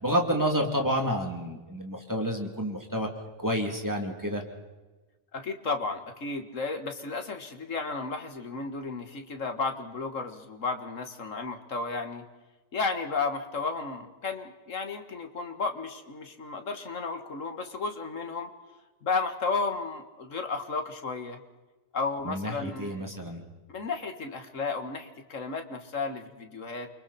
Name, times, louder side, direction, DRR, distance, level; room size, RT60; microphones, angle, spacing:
voice 1, 0.0-3.1 3.4-4.4 22.2-23.4, equal, 15° right, 1 dB, 2.8 m, -29 dB
voice 2, 5.3-12.2 12.7-18.5 19.0-21.4 21.9-23.0 23.7-26.9, left 4 dB, 70° left, 6 dB, 2.1 m, -33 dB
29.0 x 24.5 x 4.3 m, 1.2 s
omnidirectional pair, 1.4 m